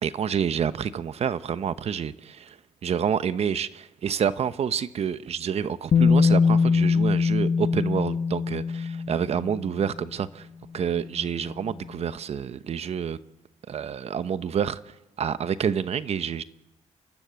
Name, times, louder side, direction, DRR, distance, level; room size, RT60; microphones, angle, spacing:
voice 1, 0.0-2.6 2.8-8.6 9.1-10.5 10.7-13.2 13.7-14.8 15.2-16.4, right 7 dB, 55° right, 1.0 m, -28 dB
Bass guitar, 5.9-9.9 11.0-11.1, left 5 dB, 50° left, 1.2 m, -22 dB
29.5 x 12.5 x 8.1 m
cardioid pair, 100°, 13 cm